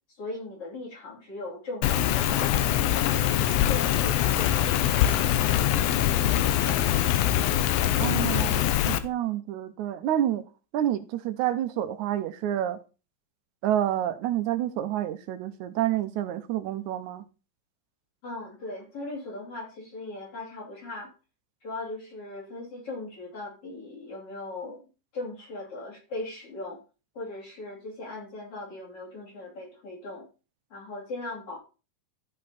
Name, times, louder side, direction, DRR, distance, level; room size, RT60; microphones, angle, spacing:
voice 1, 0.2-2.6 3.3-5.7 18.2-21.1 21.6-24.8 25.1-26.8 27.2-30.2 30.7-31.6, left 2 dB, 50° left, 3.9 m, -39 dB
Rain, 1.8-9.0, left 12 dB, 75° left, 1.6 m, -23 dB
voice 2, 8.0-10.4 10.7-12.8 13.6-17.2, right 11 dB, 85° right, 2.2 m, -28 dB
13.5 x 5.5 x 4.1 m
omnidirectional pair, 3.4 m